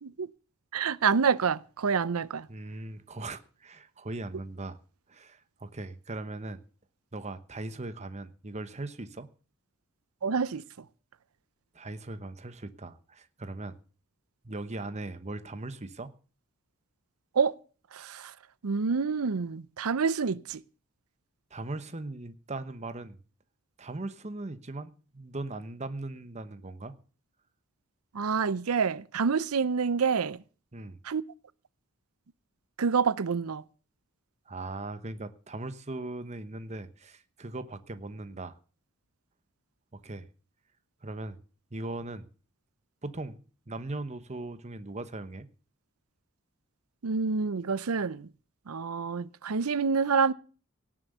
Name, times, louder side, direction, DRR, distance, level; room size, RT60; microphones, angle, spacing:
voice 1, 0.7-2.5 10.2-10.6 17.3-17.5 17.9-18.3 18.6-20.6 28.1-30.4 31.0-31.2 32.8-33.6 47.0-48.3 48.7-50.3, right 5 dB, 85° right, 0.6 m, -27 dB
voice 2, 2.5-4.8 5.1-6.6 7.1-9.3 11.7-13.8 14.4-16.1 21.5-23.2 23.8-26.9 30.7-31.0 34.5-38.5 39.9-40.2 41.0-41.4 41.7-42.3 43.0-43.4 43.7-45.5, right 2 dB, 30° right, 1.0 m, -39 dB
17.5 x 7.6 x 6.8 m
head